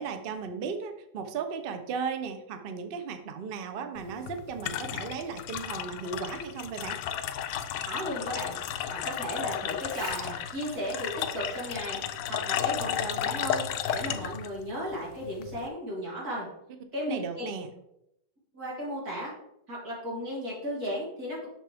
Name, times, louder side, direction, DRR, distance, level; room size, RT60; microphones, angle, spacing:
voice 1, 0.0-7.0 17.0-17.7, right 5 dB, 70° right, 7 dB, 0.5 m, -36 dB
sound 1, 4.0-15.7, left 9 dB, 85° left, 1.2 m, -33 dB
voice 2, 7.9-8.6 8.9-13.7 13.9-16.5 16.9-17.5 18.5-19.3 19.7-21.5, equal, 55° right, -5 dB, 3.4 m, -35 dB
sound 2, 9.7-12.6 12.9-14.3 14.9-15.0, right 1 dB, 90° right, 3.6 m, -46 dB
7.3 x 6.1 x 3.4 m, 0.81 s
omnidirectional pair, 1.9 m